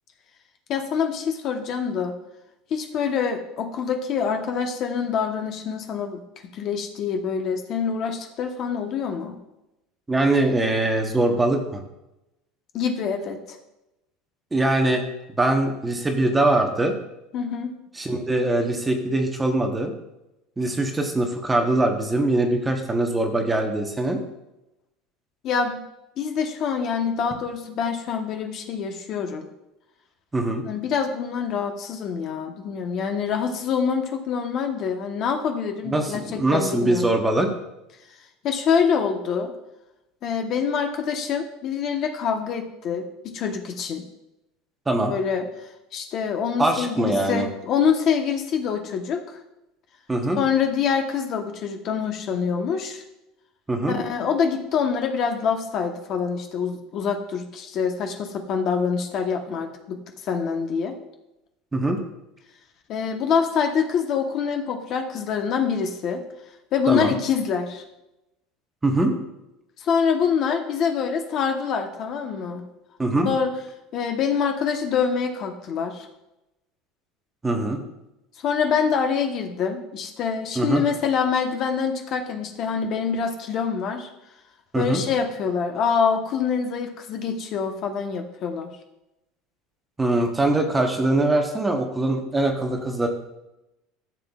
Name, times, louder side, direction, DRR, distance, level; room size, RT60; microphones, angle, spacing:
voice 1, 0.7-2.2 2.7-6.2 6.5-9.4 12.7-13.4 17.3-17.7 25.4-25.8 26.2-29.5 30.6-37.1 38.4-39.5 40.2-44.0 45.1-45.5 45.9-49.4 50.4-53.0 53.9-60.0 60.2-60.9 62.9-66.2 66.7-67.8 69.8-72.6 73.2-73.5 73.9-76.1 78.4-84.1 84.7-88.7, left 6 dB, 40° left, 4 dB, 1.0 m, -25 dB
voice 2, 10.1-11.8 14.5-15.0 15.4-16.9 18.0-19.9 20.6-24.2 30.3-30.6 35.8-37.5 44.9-45.1 46.6-47.5 50.1-50.4 53.7-54.0 61.7-62.0 66.9-67.1 68.8-69.1 73.0-73.3 77.4-77.8 80.6-80.8 84.7-85.0 90.0-93.1, right 2 dB, 10° right, 3 dB, 0.9 m, -22 dB
13.5 x 7.3 x 2.4 m, 0.92 s
cardioid pair, 150°, 0 cm